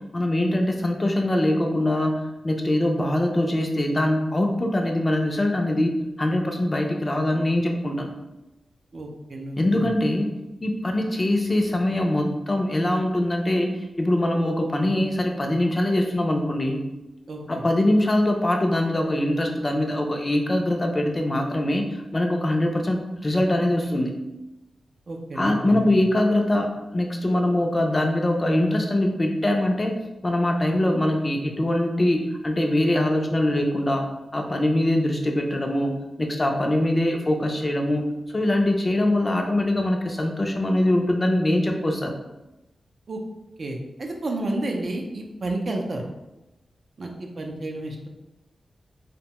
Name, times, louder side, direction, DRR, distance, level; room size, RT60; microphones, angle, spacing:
voice 1, 0.1-8.1 9.6-10.3 10.6-13.7 14.0-16.8 17.5-24.1 25.4-30.0 30.2-34.0 34.3-35.9 36.2-38.1 38.3-42.2, left 1 dB, 30° left, 2 dB, 0.4 m, -23 dB
voice 2, 8.9-9.9 17.3-17.6 25.1-25.9 43.1-43.2 43.6-46.1 47.0-48.1, right 2 dB, 55° right, 1 dB, 0.4 m, -31 dB
2.6 x 2.1 x 2.9 m, 0.98 s
cardioid pair, 70°, 0 cm